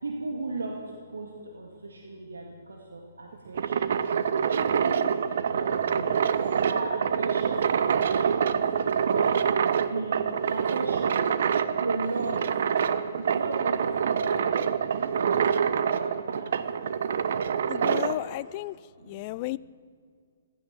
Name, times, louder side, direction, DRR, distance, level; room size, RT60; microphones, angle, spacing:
voice 1, 0.0-4.0 4.4-5.1 5.5-6.2 6.5-8.6 9.0-9.4 9.8-11.3 11.7-12.8 13.2-14.6 15.1-16.5 19.0-19.3, right 2 dB, 65° right, 1 dB, 1.8 m, -36 dB
sound 1, 3.3-18.2, right 7 dB, 50° right, 0.7 m, -26 dB
voice 2, 17.7-18.8 19.0-19.6, left 18 dB, 30° left, 19 dB, 0.3 m, -33 dB
15.5 x 13.5 x 6.9 m, 2.1 s
figure-of-eight pair, 125°, 0 cm